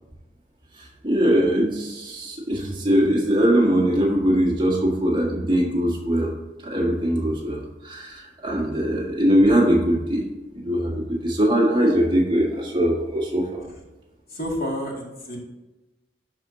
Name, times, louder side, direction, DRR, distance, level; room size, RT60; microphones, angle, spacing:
voice 1, 1.0-6.3 6.6-10.3 10.6-13.6, equal, 25° right, -3 dB, 1.6 m, -21 dB
voice 2, 14.3-15.4, equal, 55° left, -2 dB, 2.1 m, -29 dB
11.5 x 4.4 x 2.7 m, 1.0 s
head